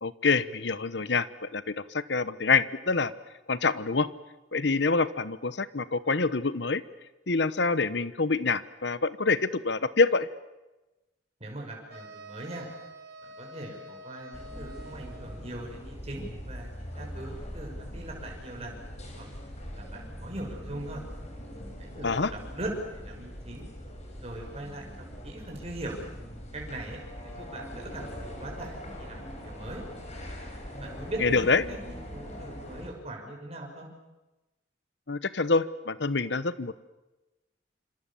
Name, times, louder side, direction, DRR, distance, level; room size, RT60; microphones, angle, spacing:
voice 1, 0.0-3.1 3.5-4.1 4.5-6.8 7.3-10.3 22.0-22.3 31.2-31.6 35.1-36.7, left 4 dB, 70° left, 15 dB, 1.1 m, -26 dB
voice 2, 11.4-12.7 13.4-16.7 16.9-18.8 19.2-21.0 21.8-23.7 24.2-26.0 26.5-27.0 27.2-29.8 30.8-33.9, right 1 dB, 35° right, 0 dB, 6.0 m, -40 dB
sound 1, 11.9-15.6, right 1 dB, 60° right, 5.2 m, -47 dB
sound 2, 14.3-32.9, equal, 40° left, 5.9 m, -42 dB
26.5 x 26.5 x 7.2 m, 1.1 s
head